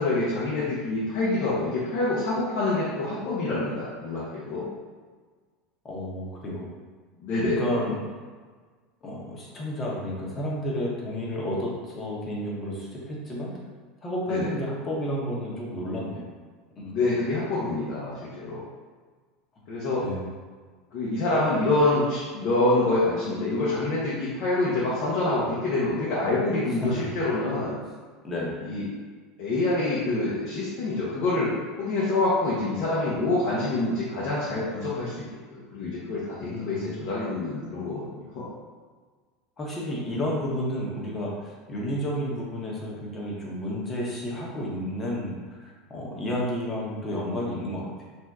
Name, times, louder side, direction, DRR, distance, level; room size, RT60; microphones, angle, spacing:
voice 1, 0.0-4.7 7.2-7.7 14.3-14.5 16.9-18.6 19.7-20.0 20.9-27.8 28.6-28.8 29.4-35.2 35.5-38.5, left 2 dB, 65° left, -8 dB, 0.8 m, -26 dB
voice 2, 5.8-6.7 7.6-8.0 9.0-13.5 14.0-16.2 16.7-17.0 20.0-20.3 27.0-27.1 28.2-28.6 36.4-36.9 39.6-48.0, equal, 30° left, -4 dB, 1.0 m, -31 dB
2.7 x 2.2 x 3.5 m, 1.5 s
hypercardioid pair, 90°, 0 cm